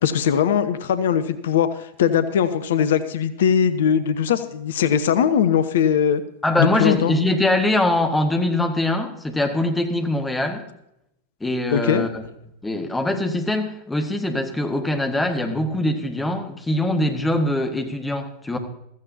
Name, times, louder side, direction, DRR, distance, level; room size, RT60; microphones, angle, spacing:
voice 1, 0.0-6.2 6.6-7.1 11.7-12.0, left 8 dB, 60° left, 12 dB, 0.8 m, -20 dB
voice 2, 6.4-10.6 11.4-12.2 12.6-18.6, left 1 dB, 10° left, 5 dB, 1.7 m, -22 dB
15.0 x 14.5 x 2.8 m, 0.81 s
figure-of-eight pair, 90°, 0 cm